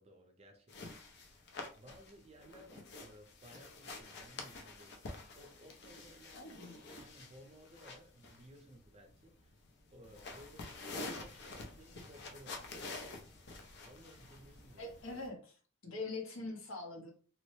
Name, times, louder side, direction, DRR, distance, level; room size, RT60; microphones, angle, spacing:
voice 1, 0.0-6.6 7.0-9.6 9.9-12.7 13.8-15.2, equal, 30° right, 4 dB, 0.5 m, -59 dB
sound 1, 0.7-15.3, left 3 dB, 55° left, 0.5 m, -49 dB
voice 2, 6.3-6.8 14.8-17.1, left 3 dB, 70° left, 0 dB, 0.9 m, -44 dB
3.0 x 2.0 x 3.1 m, 0.39 s
head